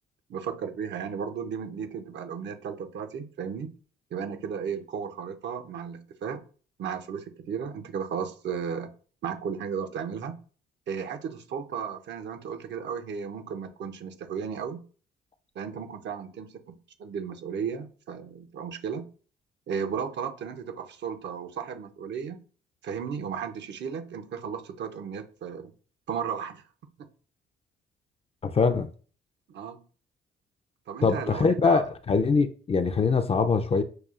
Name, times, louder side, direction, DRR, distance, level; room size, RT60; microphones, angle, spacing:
voice 1, 0.3-3.7 4.1-6.4 6.8-8.9 9.2-10.4 10.9-14.8 15.5-19.0 19.7-22.4 22.8-25.7 26.1-26.6 27.0-27.1 29.5-29.8 30.9-31.8, right 7 dB, 60° right, 0.7 m, -34 dB
voice 2, 28.4-28.9 31.0-33.8, left 4 dB, 30° left, 0.4 m, -23 dB
6.5 x 2.3 x 2.4 m
cardioid pair, 90°, 20 cm